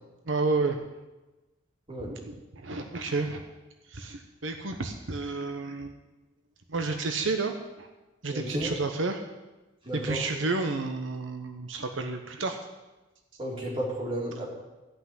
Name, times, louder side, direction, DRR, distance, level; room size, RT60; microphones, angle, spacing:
voice 1, 0.3-0.8 2.1-3.4 3.9-6.0 6.7-7.9 8.2-9.2 9.9-12.6, right 3 dB, 85° right, 5 dB, 1.0 m, -31 dB
voice 2, 8.3-8.7 9.9-10.2 13.4-14.5, right 1 dB, 30° right, -4 dB, 3.8 m, -32 dB
14.0 x 5.9 x 9.6 m, 1.1 s
head